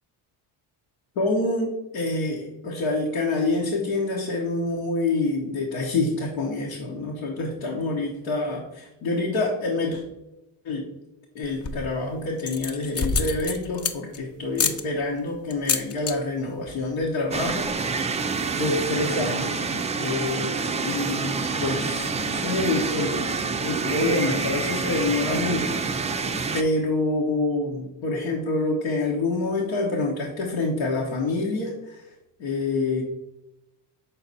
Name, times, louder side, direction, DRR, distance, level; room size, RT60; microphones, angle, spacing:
voice 1, 1.2-10.0 10.6-10.9 11.3-17.7 18.6-23.3 23.6-25.8 26.1-26.2 26.5-32.0 32.4-33.0, left 2 dB, 85° left, -2 dB, 1.2 m, -27 dB
sound 1, 11.4-11.9 12.4-14.2 14.5-14.8 15.5-16.1 16.4-16.7 17.0-17.1 17.3-17.7, left 5 dB, 35° left, 0.6 m, -27 dB
sound 2, 17.3-26.6, right 4 dB, 15° right, 0.3 m, -27 dB
5.9 x 4.0 x 4.1 m, 0.94 s
supercardioid pair, 75°, 44 cm